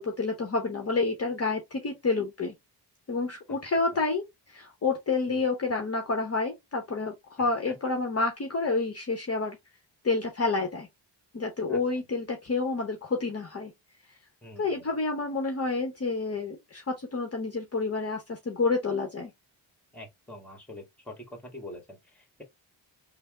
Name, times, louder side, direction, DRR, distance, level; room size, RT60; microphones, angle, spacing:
voice 1, 0.0-2.5 3.1-9.6 10.0-10.9 11.3-13.7 14.6-19.3, left 3 dB, 30° left, 0.8 m, -29 dB
voice 2, 7.4-7.7 11.7-11.8 14.4-14.9 19.9-22.4, left 1 dB, 5° left, 1.3 m, -45 dB
3.3 x 2.0 x 3.4 m
cardioid pair, 80°, 46 cm